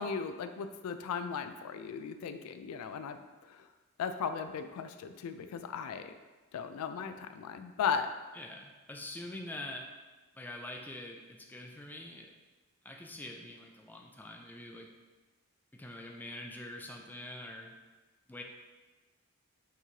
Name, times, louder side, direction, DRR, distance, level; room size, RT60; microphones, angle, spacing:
voice 1, 0.0-3.2 3.5-3.6 4.0-6.1 6.5-8.1, left 6 dB, 85° left, 10 dB, 0.3 m, -36 dB
voice 2, 8.3-9.9 10.4-12.3 12.8-14.9 15.7-17.7 18.3-18.4, left 1 dB, 10° left, 1 dB, 0.4 m, -45 dB
5.7 x 3.1 x 2.7 m, 1.2 s
head